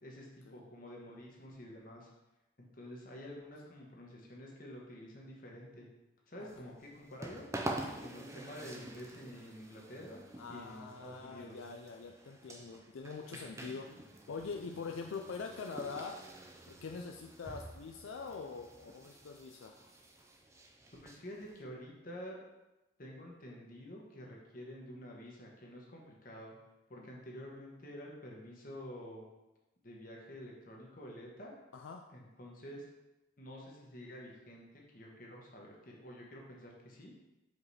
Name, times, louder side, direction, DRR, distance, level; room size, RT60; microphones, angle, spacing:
voice 1, 0.0-2.1 2.6-5.9 6.3-7.4 8.0-10.2 10.5-11.6 21.0-22.4 23.0-26.5 26.9-29.3 29.8-31.5 32.1-32.8 33.4-34.7 34.9-37.1, equal, 45° left, -2 dB, 1.3 m, -49 dB
voice 2, 6.4-6.7 7.8-8.1 10.4-16.2 16.7-19.9 26.9-27.1 31.7-32.1, left 4 dB, 80° left, 3 dB, 0.4 m, -44 dB
sound 1, 6.5-21.6, right 1 dB, 15° right, 0.5 m, -47 dB
5.1 x 4.8 x 4.1 m, 1.0 s
head